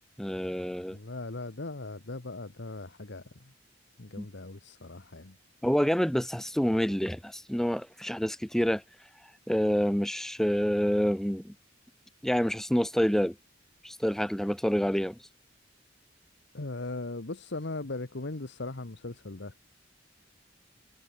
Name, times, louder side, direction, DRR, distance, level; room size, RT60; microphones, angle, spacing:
voice 1, 0.2-1.0 4.2-4.3 5.6-8.8 9.5-11.5 12.2-13.3 13.8-15.2, equal, ahead, 0.6 m, -27 dB
voice 2, 0.9-3.5 4.0-5.4 16.5-19.6, left 2 dB, 65° left, 1.4 m, -39 dB
head